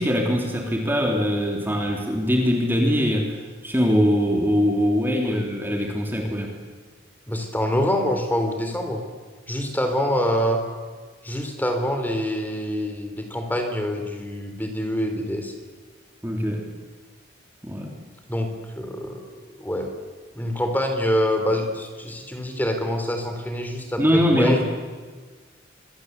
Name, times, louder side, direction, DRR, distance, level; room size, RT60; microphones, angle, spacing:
voice 1, 0.0-6.5 16.2-16.7 17.6-17.9 24.0-24.6, equal, 10° right, 1 dB, 3.3 m, -22 dB
voice 2, 7.3-9.0 9.5-10.6 11.2-15.5 18.3-19.9 20.3-24.6, equal, 10° left, 5 dB, 4.0 m, -25 dB
26.5 x 24.5 x 8.3 m, 1.5 s
head